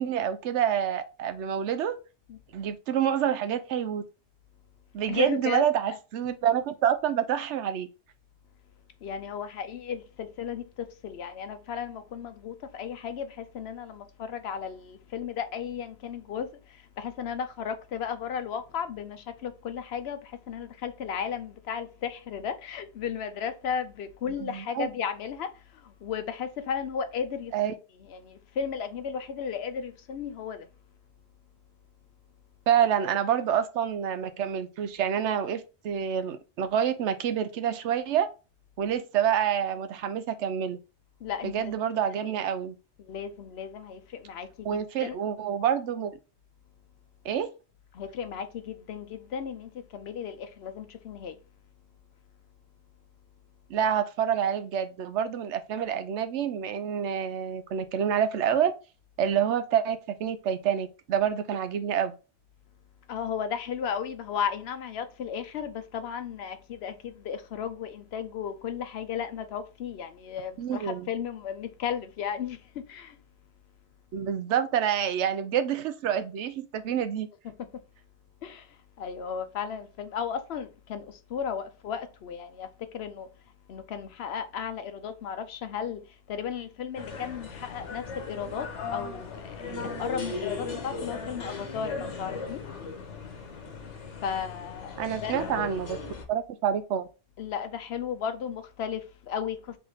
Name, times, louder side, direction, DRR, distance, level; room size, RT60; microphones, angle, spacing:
voice 1, 0.0-2.0 2.5-4.0 4.9-7.9 24.2-24.9 27.5-27.8 32.7-38.3 38.8-40.8 41.4-42.7 44.6-46.2 47.2-47.5 53.7-58.7 59.2-62.1 70.6-71.1 74.1-77.3 95.0-96.0 96.3-97.1, right 9 dB, 80° right, 0.9 m, -27 dB
voice 2, 5.1-5.6 9.0-10.6 11.0-16.5 17.0-20.2 20.5-25.5 26.0-27.5 28.2-30.6 41.2-41.5 43.1-44.7 45.0-45.1 48.0-51.3 63.1-70.8 71.1-72.6 72.9-73.1 78.4-78.6 79.0-81.1 81.3-82.7 82.9-83.3 83.7-86.0 86.3-88.7 88.9-92.6 94.2-95.3 97.4-99.6, left 7 dB, 65° left, 0.8 m, -34 dB
sound 1, 86.9-96.2, left 4 dB, 90° left, 1.3 m, -37 dB
3.6 x 3.3 x 3.9 m
omnidirectional pair, 1.2 m